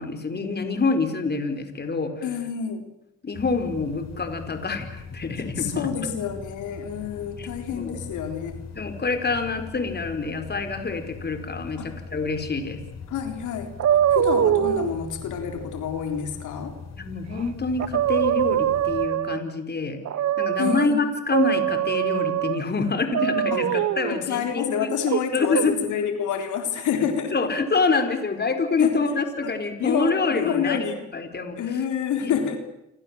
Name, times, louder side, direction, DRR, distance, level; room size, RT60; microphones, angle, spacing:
voice 1, 0.0-2.2 3.2-5.9 7.4-8.0 8.7-12.8 17.0-20.0 20.4-24.9 25.3-25.7 27.3-31.6 32.2-32.3, left 4 dB, 35° left, 7 dB, 4.8 m, -26 dB
voice 2, 2.2-2.9 5.6-8.6 11.8-11.9 13.1-13.7 14.1-16.8 20.6-21.0 23.5-23.6 24.1-27.3 28.8-29.0 29.4-29.5 29.8-31.0 31.6-32.6, left 8 dB, 80° left, 5 dB, 3.7 m, -28 dB
sound 1, 3.3-19.1, left 5 dB, 60° left, 4.7 m, -41 dB
sound 2, 13.8-14.9 17.4-17.5 17.8-19.5 20.0-20.9 21.3-22.6 23.1-24.2 25.1-25.6, right 11 dB, 60° right, 1.2 m, -23 dB
29.5 x 25.0 x 7.7 m, 0.88 s
cardioid pair, 90°, 30 cm